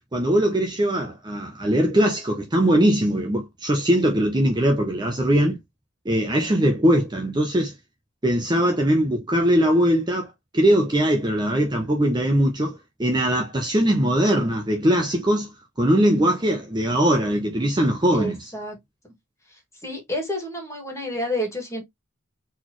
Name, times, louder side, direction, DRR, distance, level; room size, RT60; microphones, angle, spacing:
voice 1, 0.1-5.6 6.0-7.7 8.2-10.3 10.5-15.5 15.8-18.4, equal, 20° right, 0.8 m, -21 dB
voice 2, 18.1-18.8 19.0-19.1 19.5-21.8, equal, 15° left, 2.1 m, -30 dB
4.2 x 3.9 x 3.1 m
head